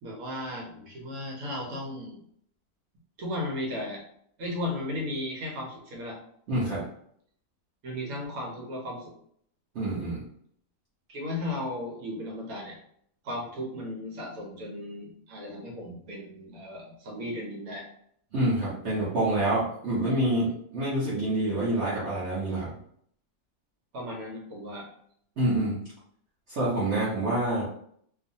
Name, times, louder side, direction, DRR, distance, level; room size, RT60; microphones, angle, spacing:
voice 1, 0.0-2.2 3.2-4.0 4.4-6.2 7.8-9.1 11.1-12.8 13.2-17.9 23.9-24.9, left 1 dB, 80° right, 0 dB, 1.2 m, -35 dB
voice 2, 6.5-6.8 9.7-10.2 18.3-22.8 25.4-25.8 26.5-27.7, right 1 dB, 55° right, -9 dB, 0.9 m, -27 dB
2.6 x 2.4 x 2.6 m, 0.66 s
omnidirectional pair, 1.6 m